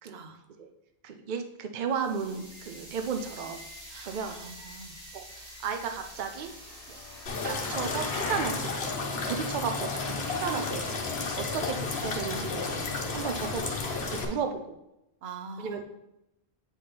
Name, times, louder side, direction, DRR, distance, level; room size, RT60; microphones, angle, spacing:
voice 1, 0.0-0.4 3.9-5.0 11.5-11.6 15.2-15.8, right 4 dB, 80° right, 7 dB, 0.9 m, -44 dB
voice 2, 1.0-3.6 4.0-4.3 5.1-6.5 6.9-7.0 7.4-11.1 11.4-14.8 15.6-15.8, right 6 dB, 55° right, 6 dB, 0.6 m, -34 dB
sound 1, 1.9-9.1, equal, 35° right, 1.9 m, -47 dB
sound 2, 6.4-8.7, left 4 dB, 50° left, 0.5 m, -39 dB
sound 3, 7.3-14.3, left 3 dB, 75° left, 1.1 m, -32 dB
8.3 x 4.2 x 3.3 m, 0.90 s
omnidirectional pair, 1.1 m